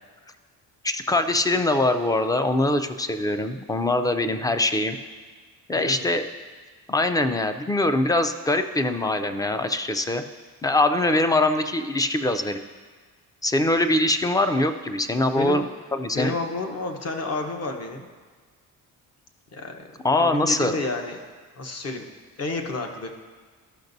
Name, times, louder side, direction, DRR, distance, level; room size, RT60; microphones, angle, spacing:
voice 1, 0.8-5.0 5.7-6.3 6.9-10.2 10.6-12.6 13.4-16.4 20.0-20.8, left 2 dB, 10° left, 9 dB, 0.3 m, -23 dB
voice 2, 5.7-6.1 15.4-15.6 16.1-18.1 19.5-21.2 21.6-22.0 22.4-23.1, left 3 dB, 45° left, 3 dB, 1.0 m, -30 dB
13.0 x 5.9 x 2.6 m, 1.5 s
cardioid pair, 110°, 36 cm